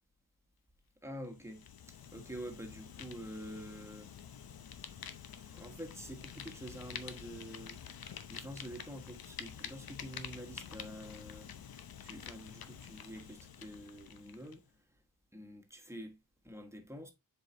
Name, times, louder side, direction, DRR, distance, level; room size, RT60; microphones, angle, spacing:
voice 1, 1.0-4.1 4.9-11.5 12.0-14.8 15.3-16.2 16.4-17.1, equal, 10° right, 1.3 m, -47 dB
Fire, 1.3-14.6, left 8 dB, 90° left, 0.8 m, -48 dB
7.6 x 4.8 x 2.6 m
wide cardioid pair, 145°, 35 cm